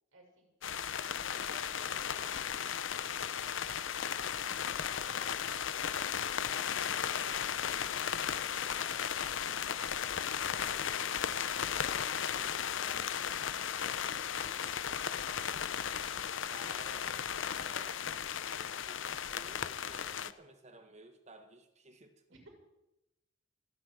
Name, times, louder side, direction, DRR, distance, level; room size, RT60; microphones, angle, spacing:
voice 1, 0.1-0.5 0.9-6.7 6.9-9.2 9.5-14.8 22.3-22.5, right 2 dB, 85° right, 1 dB, 6.4 m, -57 dB
sound 1, 0.6-20.3, left 8 dB, 70° left, 0.7 m, -35 dB
voice 2, 16.4-18.1 18.6-22.2, right 2 dB, 35° right, 7 dB, 1.7 m, -56 dB
29.5 x 10.0 x 4.7 m, 0.90 s
head